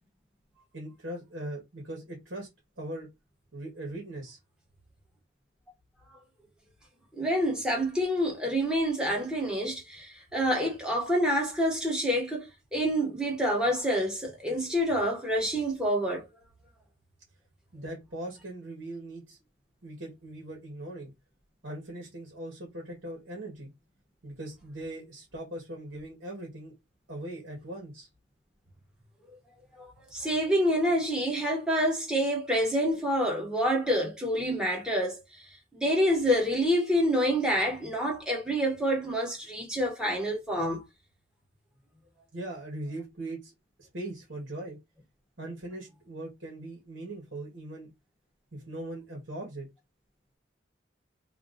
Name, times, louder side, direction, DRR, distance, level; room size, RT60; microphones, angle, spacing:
voice 1, 0.7-2.5 2.8-3.1 3.5-4.4 17.7-19.4 19.8-21.1 21.6-23.7 24.2-26.7 27.1-28.1 42.3-43.5 43.8-44.8 45.4-47.9 48.5-49.7, right 1 dB, 65° right, 1.9 m, -40 dB
voice 2, 7.2-12.5 12.7-16.3 29.8-35.2 35.7-40.8, equal, 5° right, 1.6 m, -27 dB
3.5 x 3.0 x 4.1 m
head